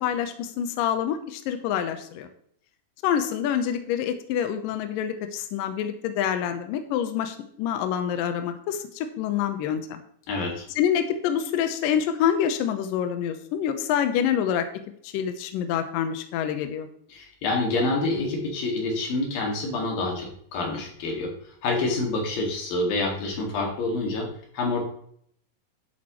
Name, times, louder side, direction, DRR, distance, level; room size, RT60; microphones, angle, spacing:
voice 1, 0.0-2.3 3.0-10.0 10.8-14.7 15.0-16.9, left 9 dB, 85° left, 8 dB, 2.0 m, -26 dB
voice 2, 10.3-10.7 17.1-21.3 21.6-24.3 24.5-24.8, left 2 dB, 60° left, 0 dB, 3.5 m, -27 dB
11.0 x 8.3 x 3.0 m, 0.66 s
omnidirectional pair, 5.0 m